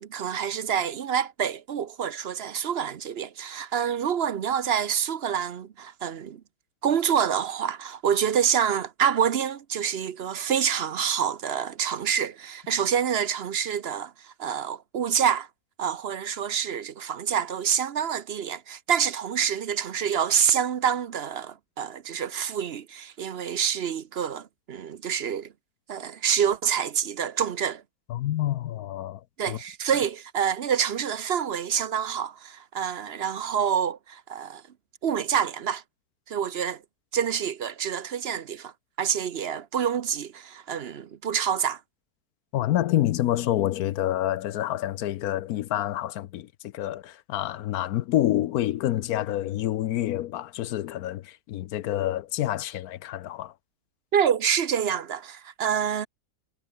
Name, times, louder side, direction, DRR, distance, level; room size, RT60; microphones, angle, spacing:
voice 1, 0.0-6.4 6.8-15.5 15.8-25.5 25.9-27.8 29.4-34.6 35.0-35.8 36.3-36.8 37.1-41.8 54.1-56.1, right 8 dB, 50° right, 0.8 m, -27 dB
voice 2, 28.1-29.2 29.5-29.6 42.5-46.5 46.7-53.5, left 13 dB, 70° left, 1.1 m, -27 dB
omnidirectional pair, 1.7 m